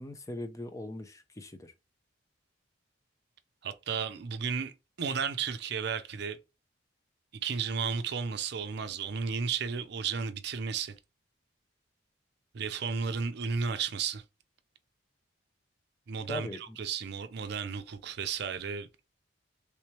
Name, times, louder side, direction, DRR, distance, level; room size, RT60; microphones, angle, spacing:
voice 1, 0.0-1.7 16.3-16.8, left 2 dB, 15° left, 0.4 m, -40 dB
voice 2, 3.6-4.7 5.0-6.4 7.4-10.9 12.5-14.2 16.1-18.9, right 6 dB, 55° right, 0.5 m, -33 dB
3.2 x 3.1 x 3.0 m
head